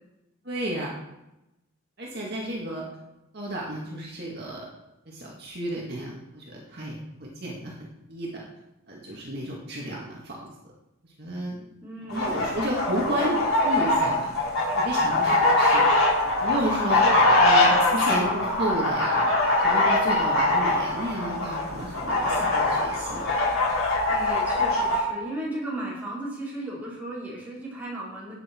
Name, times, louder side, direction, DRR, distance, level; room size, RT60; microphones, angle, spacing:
voice 1, 0.4-0.9 2.0-2.8 3.3-4.7 5.1-7.7 8.1-8.4 8.9-10.5 11.0-11.6 12.1-14.3 14.7-15.9 16.4-17.0 17.4-19.2 19.6-23.2, right 1 dB, 50° right, -4 dB, 2.1 m, -32 dB
voice 2, 11.8-12.5 16.9-18.1 24.1-28.3, right 1 dB, 10° right, -7 dB, 4.6 m, -36 dB
sound 1, 12.1-25.0, left 2 dB, 70° left, 4.4 m, -22 dB
18.0 x 8.2 x 4.6 m, 0.95 s
head